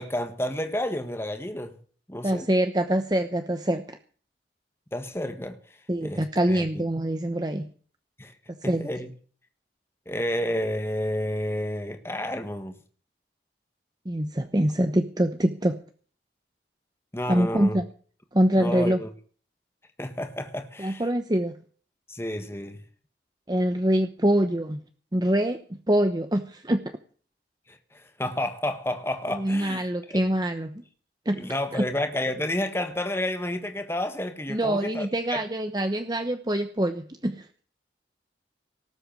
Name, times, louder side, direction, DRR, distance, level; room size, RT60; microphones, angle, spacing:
voice 1, 0.0-1.8 2.1-2.5 4.9-5.6 6.0-6.8 8.2-8.3 8.6-9.1 10.1-12.8 17.1-17.8 18.6-19.1 20.0-21.0 22.1-22.8 27.7-30.2 31.4-35.4, left 1 dB, 15° left, 1.5 m, -30 dB
voice 2, 2.2-4.0 5.9-7.7 8.6-8.9 14.0-15.8 17.3-17.8 18.3-19.0 20.8-21.5 23.5-24.8 25.1-25.6 25.9-26.8 29.3-30.8 31.2-31.4 31.7-31.8 34.5-37.7, right 1 dB, 25° right, 1.0 m, -24 dB
18.5 x 8.0 x 7.6 m
head